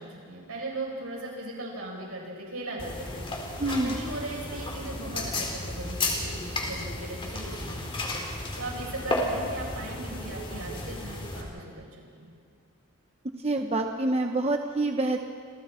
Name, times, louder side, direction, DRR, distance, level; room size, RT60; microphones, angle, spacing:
voice 1, 0.0-3.2 3.7-8.0 8.6-11.8 12.1-12.3, right 2 dB, 80° right, -3 dB, 8.0 m, -38 dB
sound 1, 2.8-11.4, left 2 dB, 25° left, 3.1 m, -33 dB
voice 2, 3.6-4.0 13.4-15.3, right 2 dB, 30° right, 4 dB, 0.9 m, -27 dB
30.0 x 28.0 x 4.5 m, 2.3 s
head